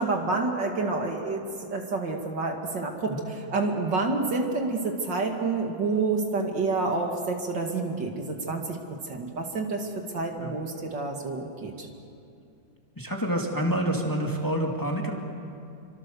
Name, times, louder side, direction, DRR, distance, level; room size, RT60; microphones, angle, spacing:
voice 1, 0.0-1.4 1.7-3.2 3.5-8.8 9.1-11.9, right 3 dB, 60° right, 2 dB, 2.7 m, -28 dB
voice 2, 13.0-15.1, right 1 dB, 10° left, 0 dB, 2.3 m, -28 dB
28.0 x 25.0 x 6.9 m, 2.5 s
omnidirectional pair, 2.2 m